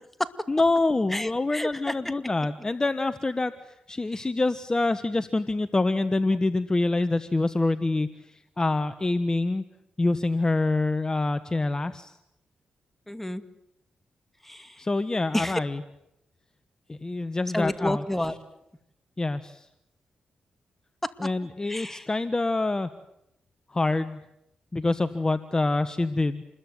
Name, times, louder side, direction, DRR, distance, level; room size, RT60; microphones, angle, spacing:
voice 1, 0.5-3.5 3.9-8.1 8.6-9.6 10.0-12.1 14.8-15.8 16.9-18.0 19.2-19.7 21.2-22.9 23.7-24.2 24.7-26.4, left 2 dB, 25° left, 11 dB, 1.3 m, -26 dB
voice 2, 1.1-1.9 4.1-4.3 13.1-13.4 14.4-14.9 15.3-15.6 17.5-18.3 21.7-22.1, left 1 dB, 10° left, 9 dB, 2.4 m, -30 dB
28.0 x 21.5 x 9.5 m, 0.83 s
cardioid pair, 65°, 3 cm